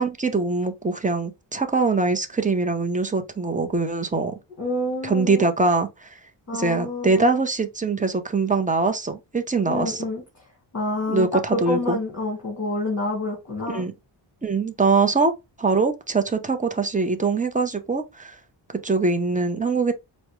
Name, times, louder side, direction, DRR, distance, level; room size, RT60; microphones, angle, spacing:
voice 1, 0.0-4.4 5.0-6.2 6.5-10.0 11.1-12.0 13.7-13.9 14.4-15.3 15.6-18.4 18.8-19.9, right 3 dB, 15° right, 0.5 m, -23 dB
voice 2, 4.6-5.5 6.5-7.3 9.7-10.2 10.7-13.8, left 2 dB, 35° left, 1.5 m, -28 dB
4.7 x 2.1 x 3.0 m
wide cardioid pair, 110°, 45 cm